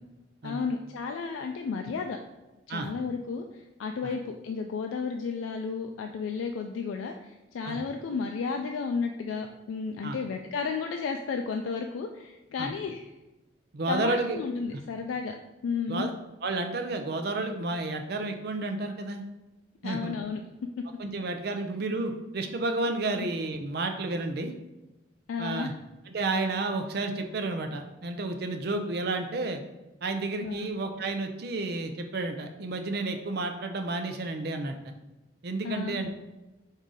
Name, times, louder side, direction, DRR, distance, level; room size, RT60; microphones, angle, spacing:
voice 1, 0.4-2.2 2.7-13.1 13.9-15.3 15.6-16.1 19.8-20.4 20.8-20.9 25.3-25.7 30.4-30.7 35.6-36.0, left 5 dB, 90° left, 4 dB, 0.3 m, -33 dB
voice 2, 13.7-14.4 15.9-16.1 16.4-19.2 19.8-20.1 21.0-24.5 25.4-25.7 26.1-29.6 30.0-34.8 35.4-36.1, right 2 dB, 55° right, 6 dB, 0.5 m, -31 dB
4.8 x 2.7 x 3.7 m, 1.0 s
head